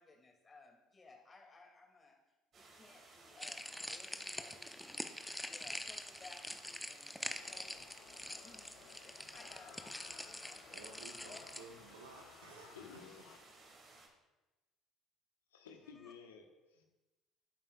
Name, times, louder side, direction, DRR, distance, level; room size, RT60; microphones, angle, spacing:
voice 1, 0.0-2.2 2.5-7.9 8.2-11.0 11.3-11.5 15.8-16.1, left 3 dB, 30° left, 1 dB, 2.6 m, -60 dB
sound 1, 2.5-14.1, right 3 dB, 45° right, 2.4 m, -60 dB
sound 2, 3.4-11.6, left 1 dB, 5° left, 0.7 m, -45 dB
sound 3, 7.3-13.9, left 10 dB, 60° left, 0.6 m, -59 dB
voice 2, 10.7-13.0, right 4 dB, 75° right, 3 dB, 1.2 m, -55 dB
voice 3, 12.7-13.3 15.5-16.8, left 6 dB, 80° left, 3 dB, 1.1 m, -54 dB
17.5 x 8.8 x 2.4 m, 1.1 s
figure-of-eight pair, 60°, 0 cm